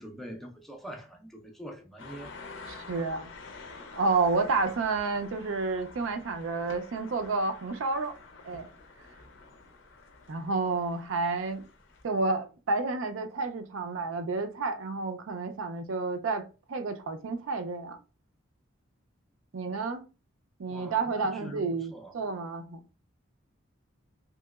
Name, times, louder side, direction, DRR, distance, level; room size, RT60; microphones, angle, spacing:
voice 1, 0.0-2.3 20.7-22.2, equal, ahead, 0.4 m, -44 dB
sound 1, 2.0-12.0, left 3 dB, 70° left, 0.6 m, -48 dB
voice 2, 2.7-3.3 4.0-8.1 8.4-8.7 10.3-11.6 12.0-16.4 16.7-18.0 19.5-20.0 20.6-22.8, right 3 dB, 75° right, 0.4 m, -30 dB
3.0 x 2.8 x 2.3 m
head